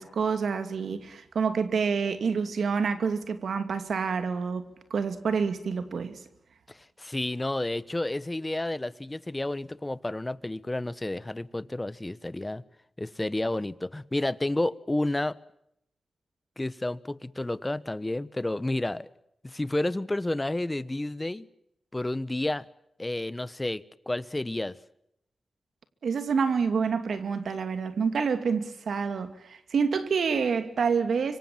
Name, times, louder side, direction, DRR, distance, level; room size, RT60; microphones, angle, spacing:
voice 1, 0.0-6.2 26.0-31.4, right 5 dB, 80° right, 2.6 m, -28 dB
voice 2, 6.7-12.6 13.0-15.4 16.6-19.1 19.4-21.5 21.9-22.7 23.0-24.8, left 1 dB, 20° left, 1.2 m, -31 dB
25.5 x 24.5 x 7.4 m
cardioid pair, 65°, 0 cm